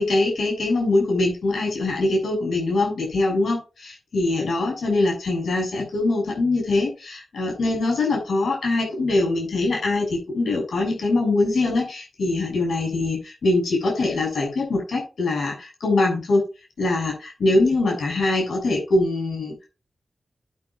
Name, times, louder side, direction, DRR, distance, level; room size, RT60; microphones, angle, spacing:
voice 1, 0.0-16.4 16.8-19.5, left 2 dB, 90° left, 0 dB, 7.0 m, -23 dB
13.0 x 9.5 x 2.5 m, 0.30 s
wide cardioid pair, 75°, 0 cm